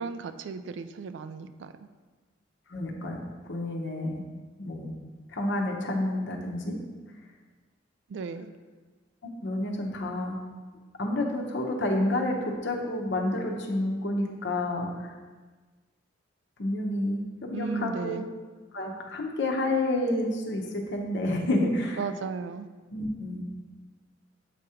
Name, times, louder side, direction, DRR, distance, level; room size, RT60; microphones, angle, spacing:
voice 1, 0.0-1.8 8.1-8.5 17.5-18.3 22.0-22.7, right 5 dB, 65° right, 11 dB, 0.3 m, -35 dB
voice 2, 2.7-4.2 4.6-4.9 5.3-6.7 9.2-10.4 11.0-15.1 16.6-18.2 18.7-22.0 22.9-23.4, left 1 dB, 65° left, 1 dB, 0.9 m, -29 dB
7.5 x 2.9 x 4.8 m, 1.4 s
head